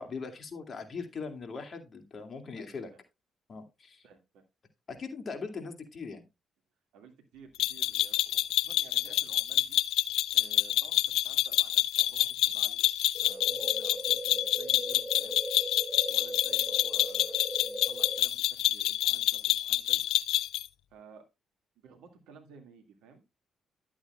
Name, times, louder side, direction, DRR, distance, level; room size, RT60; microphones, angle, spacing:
voice 1, 0.0-2.9 3.5-4.1 4.9-6.3, left 4 dB, 50° left, 6 dB, 2.4 m, -40 dB
voice 2, 2.5-3.0 4.0-4.4 6.9-9.8 10.3-12.8 13.2-15.4 16.0-20.0 20.9-21.3 21.8-23.2, right 5 dB, 75° right, 5 dB, 2.1 m, -55 dB
sound 1, 7.6-20.7, left 14 dB, 75° left, 0.4 m, -27 dB
sound 2, 13.1-18.2, right 1 dB, 15° right, 6.7 m, -39 dB
11.5 x 8.5 x 2.4 m, 0.23 s
hypercardioid pair, 45°, 0 cm